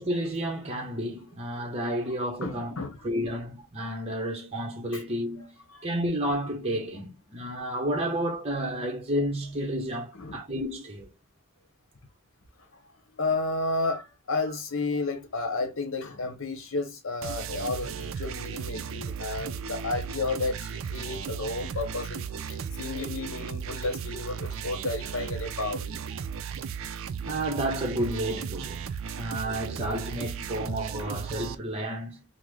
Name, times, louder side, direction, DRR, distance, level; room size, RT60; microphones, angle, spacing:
voice 1, 0.0-2.8 3.0-5.5 5.8-11.1 14.9-15.0 27.2-28.8 29.1-32.2, right 1 dB, 30° right, 0.8 m, -31 dB
voice 2, 2.4-3.0 5.7-5.9 10.1-10.4 13.1-25.9, left 3 dB, 60° left, 0.8 m, -32 dB
sound 1, 17.2-31.6, right 7 dB, 60° right, 0.3 m, -35 dB
3.8 x 2.0 x 3.1 m
head